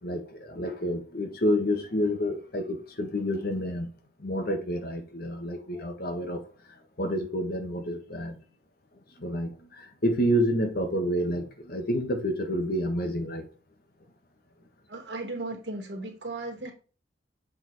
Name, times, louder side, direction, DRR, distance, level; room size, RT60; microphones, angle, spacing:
voice 1, 0.0-3.9 4.2-6.4 7.0-8.4 9.2-13.5, equal, 55° left, 1.4 m, -29 dB
voice 2, 14.9-16.7, right 2 dB, 70° right, 2.2 m, -36 dB
7.3 x 4.5 x 4.1 m
head